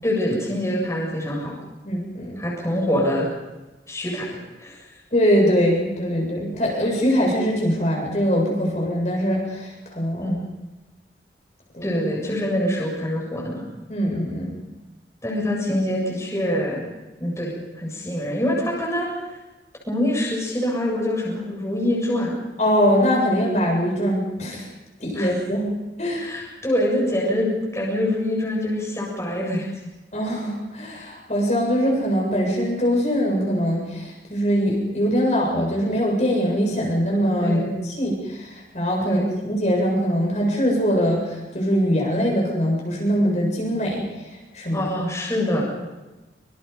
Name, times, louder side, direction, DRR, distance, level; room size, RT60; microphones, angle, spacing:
voice 1, 0.0-1.5 2.4-3.3 3.9-4.8 10.2-10.4 11.8-13.6 15.2-16.9 17.2-19.1 19.9-22.4 25.1-25.3 26.2-29.7 37.4-37.8 39.0-39.3 44.7-45.6, left 1 dB, 15° left, -3 dB, 7.2 m, -25 dB
voice 2, 1.8-2.4 5.1-10.3 11.7-12.0 12.2-12.3 13.9-14.5 22.6-24.7 25.0-26.3 30.1-44.1 44.5-44.9, equal, 40° left, -2 dB, 7.5 m, -22 dB
26.5 x 26.5 x 5.4 m, 1.1 s
head